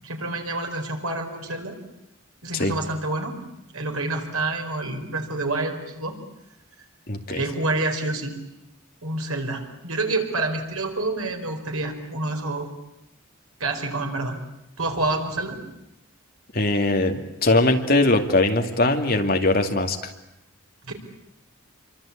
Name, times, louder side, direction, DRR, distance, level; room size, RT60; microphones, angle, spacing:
voice 1, 0.0-1.7 2.4-3.4 3.7-6.2 7.3-8.4 9.0-12.7 13.6-14.4 14.8-15.6 20.9-21.0, right 2 dB, 85° right, 4 dB, 4.8 m, -28 dB
voice 2, 7.1-7.4 16.5-20.0, left 2 dB, 45° left, 4 dB, 2.3 m, -21 dB
27.5 x 24.0 x 8.6 m, 0.85 s
head